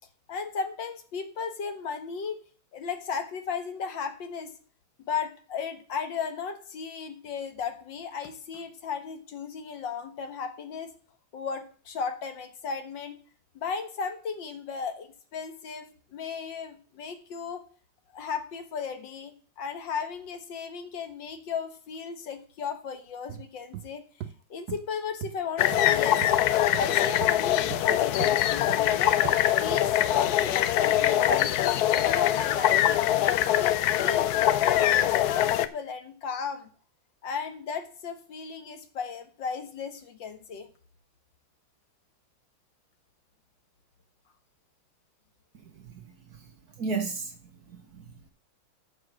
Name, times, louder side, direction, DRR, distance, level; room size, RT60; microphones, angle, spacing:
voice 1, 0.3-2.4 2.7-4.5 5.0-10.9 11.3-13.2 13.6-17.6 18.1-24.0 24.5-26.2 26.8-29.2 29.6-36.7 37.2-40.7, left 6 dB, 65° left, 1.8 m, -35 dB
sound 1, 23.3-23.5 23.7-23.9 24.2-24.3 24.7-24.8 25.2-25.4 25.7-25.9 26.2-26.4 26.7-26.9 27.2-27.3 27.7-27.9 28.2-28.3 28.7-28.9 29.2-29.4 29.7-29.9 30.3-30.4, right 11 dB, 70° right, 0.9 m, -37 dB
sound 2, 25.6-35.7, left 12 dB, 85° left, 0.8 m, -23 dB
voice 2, 45.6-47.4 47.7-48.3, right 4 dB, 55° right, 1.4 m, -36 dB
13.5 x 4.8 x 6.0 m
omnidirectional pair, 2.3 m